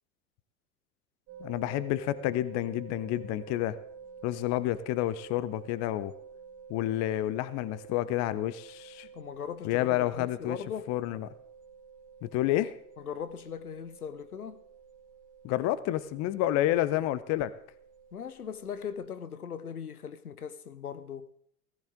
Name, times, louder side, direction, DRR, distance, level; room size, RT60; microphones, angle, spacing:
sound 1, 1.3-19.1, right 6 dB, 40° right, 2.8 m, -50 dB
voice 1, 1.4-3.8 4.2-6.1 6.7-9.1 9.6-10.6 10.9-11.3 12.2-12.7 15.4-17.5, left 14 dB, 40° left, 0.8 m, -29 dB
voice 2, 9.1-10.9 13.0-14.6 18.1-21.3, left 7 dB, 85° left, 0.8 m, -39 dB
17.5 x 15.0 x 3.7 m
figure-of-eight pair, 85°, 43 cm